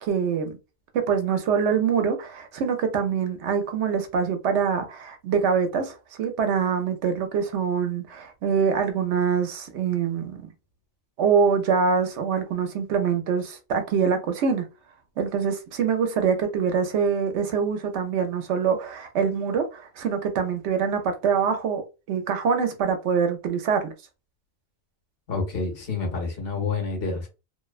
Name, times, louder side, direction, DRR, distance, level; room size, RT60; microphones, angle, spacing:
voice 1, 0.0-0.6 0.9-10.5 11.2-14.6 15.2-21.8 22.1-23.9, right 6 dB, 85° right, 0.9 m, -24 dB
voice 2, 25.3-27.3, left 4 dB, 60° left, 1.1 m, -28 dB
2.5 x 2.1 x 2.3 m
omnidirectional pair, 1.2 m